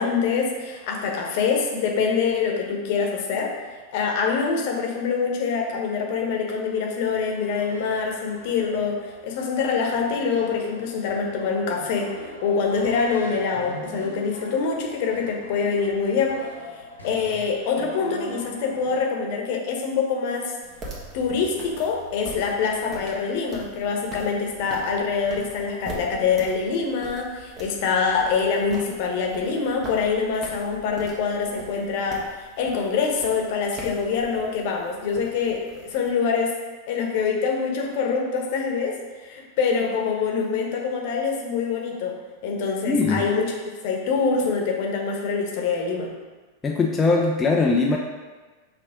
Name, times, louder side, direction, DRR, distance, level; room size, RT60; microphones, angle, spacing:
voice 1, 0.0-3.5 3.9-16.4 17.0-20.5 21.1-32.2 32.6-36.5 36.9-42.1 42.4-43.6 43.8-46.1, left 5 dB, 50° left, 1 dB, 1.0 m, -25 dB
sound 1, 5.7-19.1, left 1 dB, 80° left, 1.2 m, -42 dB
sound 2, 20.6-36.1, right 1 dB, 30° right, 1.3 m, -42 dB
voice 2, 42.9-43.3 46.6-48.0, left 3 dB, 15° left, -1 dB, 0.5 m, -21 dB
6.3 x 3.1 x 4.9 m, 1.3 s
figure-of-eight pair, 90°, 0 cm